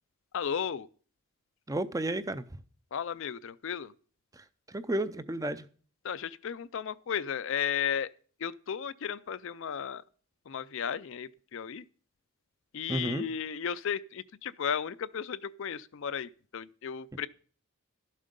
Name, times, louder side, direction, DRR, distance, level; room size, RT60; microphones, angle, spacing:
voice 1, 0.3-0.9 2.9-3.9 6.0-8.1 8.4-10.0 10.5-11.8 12.7-17.3, left 7 dB, 60° left, 0.4 m, -34 dB
voice 2, 1.7-2.4 4.3-5.6 12.9-13.3, right 1 dB, 15° right, 0.5 m, -32 dB
12.5 x 7.4 x 5.3 m
head